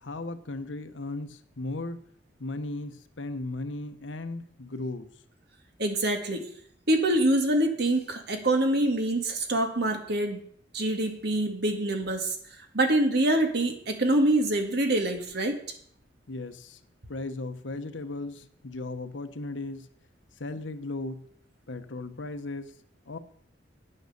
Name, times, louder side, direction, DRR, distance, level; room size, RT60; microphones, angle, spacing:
voice 1, 0.0-2.0 2.4-5.1 16.3-16.8 17.1-19.9 20.4-21.2 21.7-22.7 23.1-23.2, left 2 dB, 90° left, 9 dB, 1.0 m, -36 dB
voice 2, 5.8-6.5 6.9-10.4 10.7-12.3 12.7-15.6, right 1 dB, 60° right, 4 dB, 2.0 m, -25 dB
9.5 x 9.1 x 6.6 m, 0.62 s
head